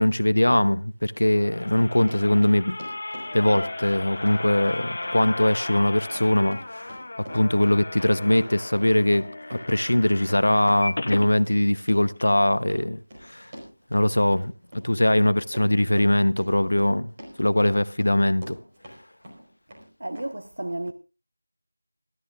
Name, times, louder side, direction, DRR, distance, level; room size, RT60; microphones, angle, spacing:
voice 1, 0.0-2.8 3.3-7.0 7.3-13.5 13.9-14.5 14.8-17.1 17.4-18.6, left 1 dB, 75° left, 0.9 m, -21 dB
Run, 0.7-0.8 1.3-19.0 19.2-19.9 20.1-20.2, equal, 25° right, 4.4 m, -44 dB
sound 1, 1.1-11.3 11.8-11.9 12.2-12.3, left 2 dB, 45° left, 0.8 m, -35 dB
voice 2, 20.0-20.9, right 1 dB, 65° right, 1.3 m, -32 dB
27.0 x 13.0 x 2.5 m
figure-of-eight pair, 175°, 0 cm